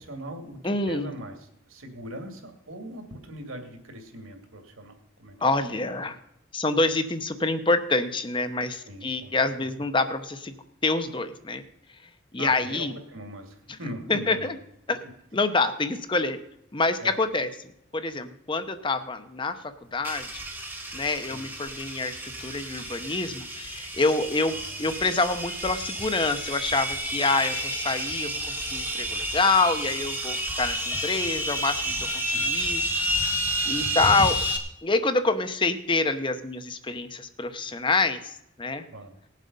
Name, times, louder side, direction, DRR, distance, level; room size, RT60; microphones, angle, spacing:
voice 1, 0.0-4.9 5.2-5.4 8.8-9.7 12.4-14.6 17.0-17.2 21.3-21.4 24.5-24.9 32.3-32.5 38.9-39.2, right 1 dB, 85° right, 5 dB, 2.4 m, -40 dB
voice 2, 0.6-1.1 5.4-6.2 6.5-10.5 10.8-11.6 12.3-12.9 14.1-14.6 14.9-15.0 15.3-16.4 16.7-17.5 17.9-20.4 20.9-32.0 32.2-32.8 33.6-34.4 34.8-38.8, left 3 dB, 25° left, 9 dB, 0.8 m, -26 dB
sound 1, 20.0-34.6, equal, 10° right, 1.5 m, -30 dB
18.0 x 7.5 x 5.4 m, 0.79 s
head